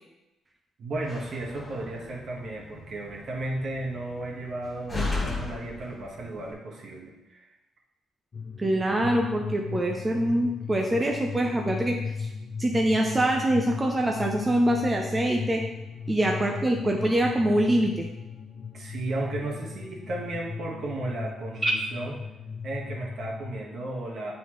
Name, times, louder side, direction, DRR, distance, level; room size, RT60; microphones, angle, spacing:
voice 1, 0.8-7.5 16.1-16.3 18.7-22.2 22.6-24.3, right 2 dB, 60° right, -1 dB, 1.4 m, -34 dB
Slam, 0.9-6.5, left 2 dB, 5° left, 1.8 m, -36 dB
sound 1, 8.3-23.6, left 5 dB, 40° left, 0.5 m, -37 dB
voice 2, 8.6-12.3 12.6-15.6 16.1-18.1 21.6-21.7, right 1 dB, 20° right, 1 dB, 0.6 m, -24 dB
8.0 x 4.1 x 3.1 m, 1.0 s
cardioid pair, 90°, 0 cm